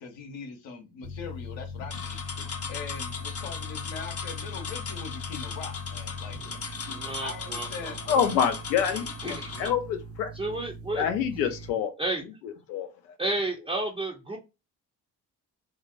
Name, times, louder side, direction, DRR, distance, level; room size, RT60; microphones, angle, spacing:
voice 1, 0.0-6.4 7.2-8.0 9.5-9.7, left 5 dB, 65° left, 0.9 m, -41 dB
sound 1, 1.0-11.7, left 2 dB, 60° right, 0.7 m, -40 dB
sound 2, 1.9-9.7, left 5 dB, 30° left, 0.6 m, -38 dB
voice 2, 6.9-8.2 9.2-9.7 10.3-11.0 12.0-12.2 13.2-14.4, right 2 dB, 10° right, 0.5 m, -32 dB
voice 3, 8.1-10.3 11.0-11.9 12.4-12.9, left 8 dB, 85° left, 0.6 m, -27 dB
2.7 x 2.0 x 2.4 m
hypercardioid pair, 40°, 49 cm